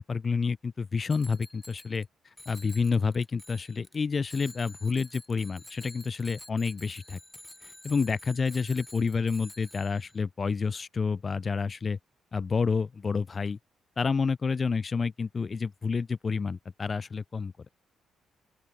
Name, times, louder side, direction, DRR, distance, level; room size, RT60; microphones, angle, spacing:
voice 1, 0.0-2.1 2.5-7.2 7.6-12.0 12.3-13.6 14.0-17.7, left 5 dB, 35° left, 0.6 m, -29 dB
Bicycle bell, 1.1-2.1 2.4-4.0 4.3-10.2, left 1 dB, 10° left, 6.6 m, -49 dB
open air
cardioid pair, 90°, 0 cm